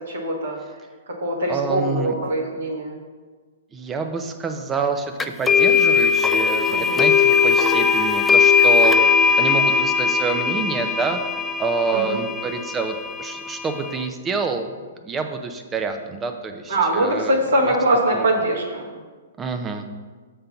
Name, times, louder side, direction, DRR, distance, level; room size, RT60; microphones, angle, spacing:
voice 1, 0.1-0.6 1.2-3.0 6.7-7.0 11.9-12.2 16.7-18.9, right 1 dB, 75° right, -2 dB, 1.4 m, -22 dB
voice 2, 1.5-2.1 3.7-11.2 11.6-14.7 15.0-17.8 18.1-18.3 19.4-19.9, right 4 dB, 15° right, 6 dB, 0.7 m, -27 dB
sound 1, 5.2-14.1, left 5 dB, 10° left, 0.3 m, -19 dB
6.7 x 3.9 x 5.7 m, 1.4 s
hypercardioid pair, 125°, 0 cm